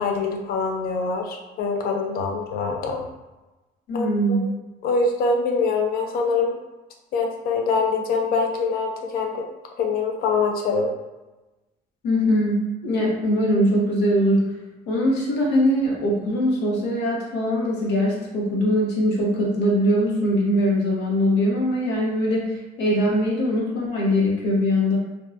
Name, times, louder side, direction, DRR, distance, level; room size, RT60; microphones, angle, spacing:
voice 1, 0.0-3.0 3.9-4.4 4.8-6.5 7.1-9.4 9.8-10.9, left 4 dB, 60° left, 1 dB, 0.5 m, -24 dB
voice 2, 3.9-4.5 12.0-14.4 14.9-22.5 22.8-25.0, equal, 90° left, -3 dB, 0.8 m, -21 dB
2.6 x 2.2 x 2.4 m, 1.1 s
cardioid pair, 110°, 17 cm